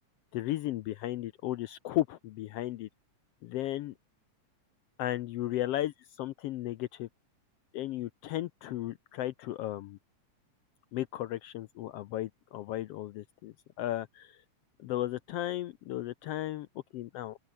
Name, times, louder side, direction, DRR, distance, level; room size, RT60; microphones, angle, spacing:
voice 1, 0.3-2.9 3.4-3.9 5.0-7.1 7.7-10.0 10.9-14.4 14.8-16.7 16.9-17.4, left 14 dB, 75° left, 1.4 m, -35 dB
open air
omnidirectional pair, 3.3 m